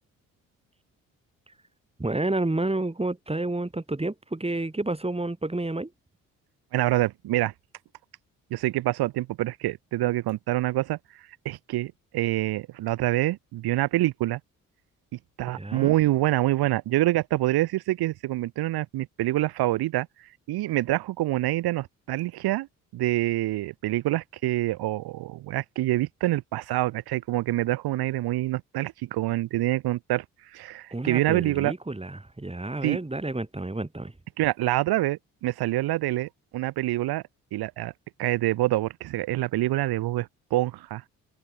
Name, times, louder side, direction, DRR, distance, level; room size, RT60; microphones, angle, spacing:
voice 1, 2.0-5.9 15.5-15.9 30.9-34.1, right 2 dB, 15° right, 3.6 m, -30 dB
voice 2, 6.7-7.5 8.5-11.0 11.5-14.4 15.4-20.1 20.5-22.7 22.9-30.3 30.5-31.7 32.8-33.0 34.4-37.2 37.5-37.9 38.2-41.0, right 16 dB, 70° right, 3.7 m, -26 dB
open air
hypercardioid pair, 45°, 39 cm